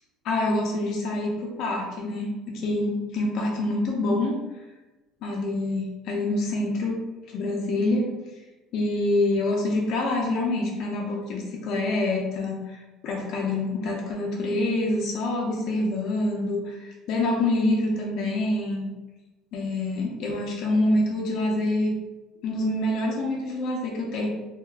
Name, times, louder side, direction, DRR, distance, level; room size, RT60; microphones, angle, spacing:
voice 1, 0.2-4.4 5.2-7.0 7.3-8.1 8.7-18.9 19.5-22.0 22.4-24.3, left 2 dB, 50° left, -1 dB, 0.5 m, -26 dB
2.8 x 2.2 x 3.3 m, 1.1 s
cardioid pair, 155°, 0 cm